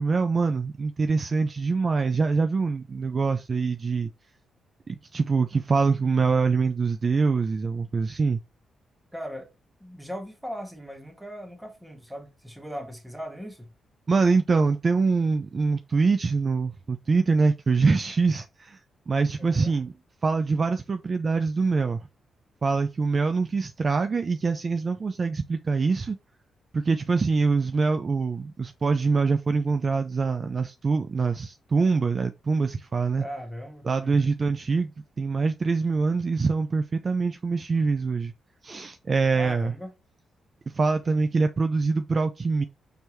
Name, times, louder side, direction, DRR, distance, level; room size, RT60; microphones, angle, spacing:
voice 1, 0.0-4.1 4.9-8.4 14.1-18.8 19.1-19.9 20.2-22.0 22.6-26.2 26.7-33.2 33.9-34.9 35.2-38.3 38.6-39.7 40.7-42.6, right 4 dB, 35° right, 0.3 m, -24 dB
voice 2, 9.1-9.5 9.8-13.7 19.4-19.8 33.2-34.3 39.3-39.9, equal, 5° right, 1.3 m, -38 dB
4.5 x 3.3 x 3.0 m
cardioid pair, 110°, 0 cm